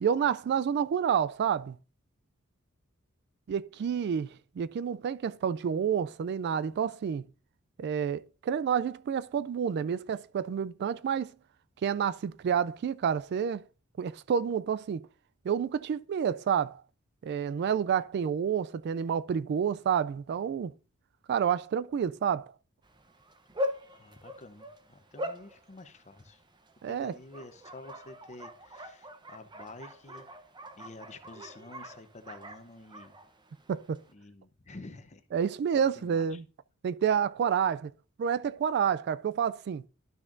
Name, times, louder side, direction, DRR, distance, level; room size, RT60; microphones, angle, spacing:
voice 1, 0.0-1.8 3.5-7.3 7.8-11.3 11.8-13.6 14.0-15.1 15.4-16.8 17.2-20.7 21.3-22.5 26.8-27.1 33.7-34.0 35.3-36.4 36.8-37.9 38.2-39.8, right 7 dB, 55° right, 0.3 m, -29 dB
Bark, 22.8-34.1, left 1 dB, 20° right, 0.7 m, -42 dB
voice 2, 23.9-26.4 26.8-30.3 30.8-33.2 34.1-35.5 36.0-36.4, left 2 dB, 35° left, 0.8 m, -49 dB
12.0 x 6.1 x 2.5 m
head